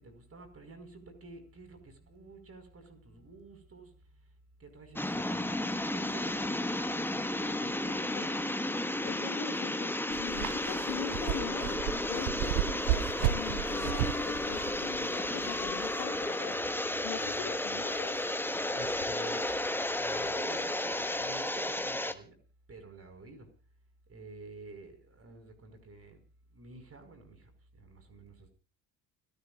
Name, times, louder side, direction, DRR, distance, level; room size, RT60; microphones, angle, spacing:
voice 1, 0.0-4.3 4.6-6.7 7.6-8.3 12.4-12.6 17.1-17.4 17.7-17.8 18.7-19.6 20.0-20.8 21.2-22.4 22.7-23.5 24.1-26.2 26.5-28.5, right 3 dB, 35° right, 5.0 m, -50 dB
sound 1, 5.0-22.1, left 1 dB, 5° left, 1.4 m, -33 dB
voice 2, 9.0-11.8 12.1-18.2, left 15 dB, 60° left, 1.4 m, -42 dB
sound 2, 10.1-16.0, right 14 dB, 65° right, 0.8 m, -34 dB
Writing, 11.7-21.5, left 8 dB, 85° left, 2.8 m, -49 dB
29.5 x 12.0 x 2.4 m
hypercardioid pair, 60°, 42 cm